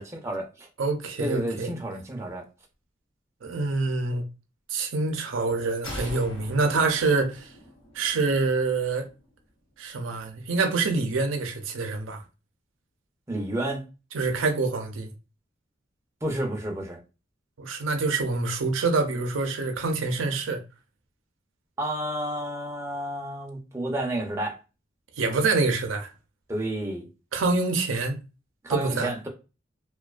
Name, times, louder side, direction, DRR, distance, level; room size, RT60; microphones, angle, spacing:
voice 1, 0.0-0.7 1.2-2.5 13.3-13.8 16.2-17.0 21.8-24.6 26.5-27.1 28.6-29.3, right 1 dB, 15° right, 0.5 m, -30 dB
voice 2, 0.8-1.7 3.4-4.2 4.7-7.5 7.9-9.1 9.8-12.2 14.1-15.1 17.6-20.6 25.2-26.1 27.3-28.2 28.7-29.1, right 3 dB, 85° right, 0.5 m, -26 dB
sound 1, 5.8-9.4, left 1 dB, 80° left, 0.9 m, -42 dB
2.4 x 2.2 x 2.3 m
head